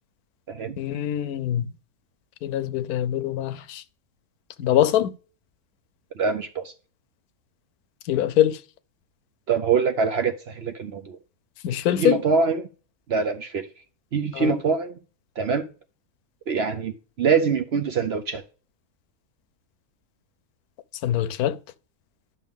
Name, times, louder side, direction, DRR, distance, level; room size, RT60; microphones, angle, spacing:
voice 1, 0.8-1.7 2.4-3.8 4.6-5.1 8.1-8.6 11.6-12.2 14.3-14.5 21.0-21.6, left 11 dB, 80° left, 1.1 m, -23 dB
voice 2, 6.1-6.7 9.5-11.2 12.0-12.7 13.1-13.7 14.1-15.0 15.4-15.7 16.5-18.4, right 5 dB, 60° right, 0.7 m, -24 dB
11.0 x 6.2 x 3.6 m
omnidirectional pair, 1.6 m